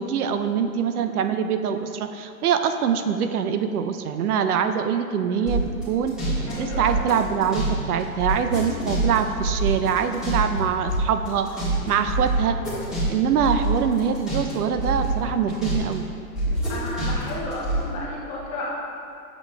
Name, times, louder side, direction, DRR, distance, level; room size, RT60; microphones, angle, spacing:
voice 1, 0.0-12.6 13.1-16.1, right 7 dB, 80° right, 8 dB, 0.6 m, -24 dB
sound 1, 5.5-7.7 8.0-10.6 10.9-14.5 14.8-16.0 16.4-17.8, right 2 dB, ahead, 1.4 m, -25 dB
voice 2, 6.5-6.9 16.7-18.6, left 2 dB, 15° left, -5 dB, 0.5 m, -32 dB
7.8 x 6.1 x 2.2 m, 2.6 s
hypercardioid pair, 145°, 44 cm